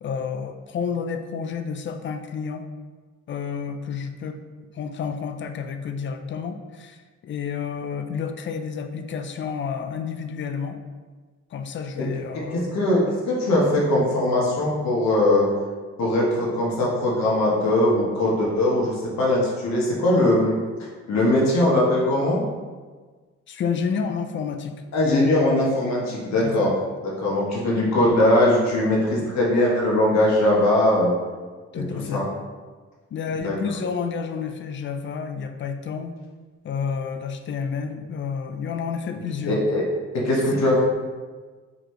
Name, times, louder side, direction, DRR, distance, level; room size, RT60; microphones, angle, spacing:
voice 1, 0.0-2.7 3.3-4.4 4.7-10.8 11.5-12.8 23.5-24.7 25.1-25.3 26.4-26.7 31.7-32.2 33.1-36.2 36.6-39.6 40.5-40.6, left 6 dB, 40° left, 7 dB, 0.4 m, -30 dB
voice 2, 12.5-15.5 16.0-20.6 21.1-22.4 24.9-26.7 27.0-31.1 31.7-31.8 32.1-32.2 33.4-33.6 39.5-39.8 40.1-40.9, left 1 dB, 65° left, -4 dB, 1.1 m, -20 dB
4.0 x 2.8 x 3.1 m, 1.4 s
cardioid pair, 90°, 30 cm